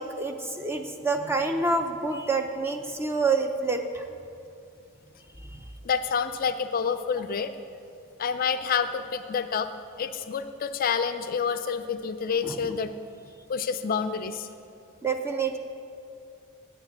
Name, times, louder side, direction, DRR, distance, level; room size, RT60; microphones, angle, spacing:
voice 1, 0.0-4.1 5.5-5.6 12.4-12.8 15.0-15.6, right 3 dB, 10° right, 5 dB, 0.6 m, -28 dB
voice 2, 5.8-7.6 8.2-9.7 10.0-12.9 13.5-14.5, left 6 dB, 45° left, 10 dB, 0.4 m, -28 dB
8.3 x 7.9 x 8.8 m, 2.5 s
head